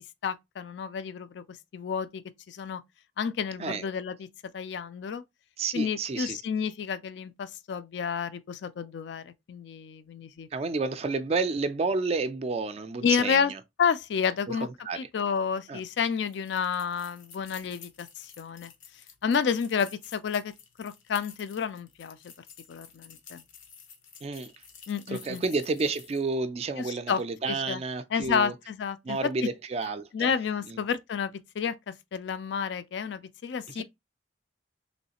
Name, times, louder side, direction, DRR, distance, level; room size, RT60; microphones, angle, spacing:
voice 1, 0.2-1.4 1.7-2.2 2.5-2.8 3.2-4.3 4.5-5.2 5.7-10.5 13.0-13.5 13.8-14.7 14.9-18.7 19.2-20.5 20.8-22.3 22.7-23.4 24.9-25.4 26.8-27.2 27.5-27.8 28.1-29.5 30.1-33.8, left 6 dB, 65° left, 0.3 m, -30 dB
voice 2, 5.6-6.4 10.5-13.6 14.5-15.0 15.7-15.8 24.2-24.5 25.1-28.5 29.0-30.3 30.7-30.8 33.7-33.8, right 3 dB, 35° right, 0.3 m, -30 dB
sound 1, 16.3-26.3, left 7 dB, 90° left, 0.8 m, -51 dB
3.1 x 3.0 x 2.8 m
head